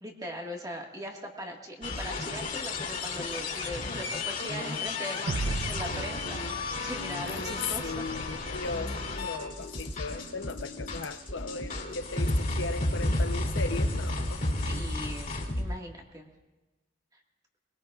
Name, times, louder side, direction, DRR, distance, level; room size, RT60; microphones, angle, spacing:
voice 1, 0.0-7.9 14.6-16.3, equal, 20° right, 1 dB, 1.8 m, -40 dB
sound 1, 1.8-15.6, left 2 dB, 45° left, 2.8 m, -32 dB
sound 2, 5.3-8.6, right 3 dB, 65° right, 0.6 m, -36 dB
voice 2, 7.3-14.4, left 4 dB, 70° left, 10 dB, 0.8 m, -37 dB
23.0 x 21.0 x 2.4 m, 1.1 s
head